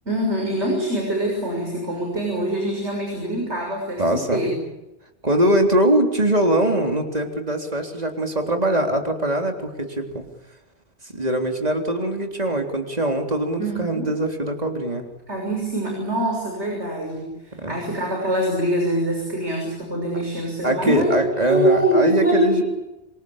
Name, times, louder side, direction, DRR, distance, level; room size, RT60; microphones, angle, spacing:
voice 1, 0.0-4.6 13.6-14.1 15.3-17.3 17.7-21.2 21.5-22.6, right 1 dB, 85° right, 1 dB, 6.8 m, -24 dB
voice 2, 4.0-4.4 5.2-10.3 11.0-15.1 17.5-17.8 20.6-22.6, right 1 dB, 35° right, 4 dB, 3.8 m, -22 dB
27.0 x 24.0 x 8.8 m, 1.0 s
omnidirectional pair, 1.1 m